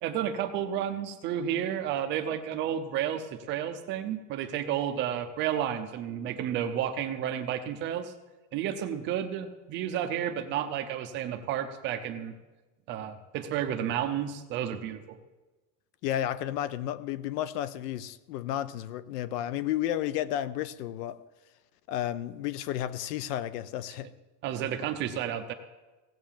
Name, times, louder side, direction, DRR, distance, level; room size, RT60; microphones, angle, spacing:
voice 1, 0.0-8.1 8.5-12.3 12.9-15.2 24.4-25.5, right 10 dB, 25° right, 7 dB, 0.5 m, -31 dB
voice 2, 16.0-21.2 21.9-24.1, left 12 dB, 75° left, 16 dB, 0.9 m, -32 dB
16.5 x 7.7 x 7.3 m, 1.2 s
supercardioid pair, 175°, 48 cm